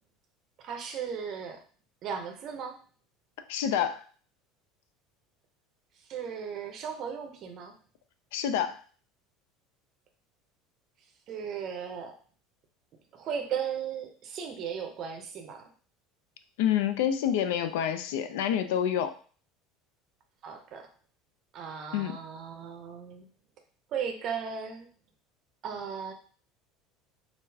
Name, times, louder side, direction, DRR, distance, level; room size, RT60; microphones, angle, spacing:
voice 1, 0.6-1.6 2.0-2.8 6.1-7.7 11.3-12.1 13.1-15.7 20.4-20.9 21.5-23.3 23.9-24.9 25.6-26.1, right 7 dB, 35° right, 5 dB, 0.6 m, -36 dB
voice 2, 3.5-4.0 8.3-8.8 16.6-19.1 21.9-22.2, left 9 dB, 90° left, 10 dB, 0.4 m, -27 dB
3.8 x 2.4 x 2.7 m, 0.42 s
cardioid pair, 170°, 0 cm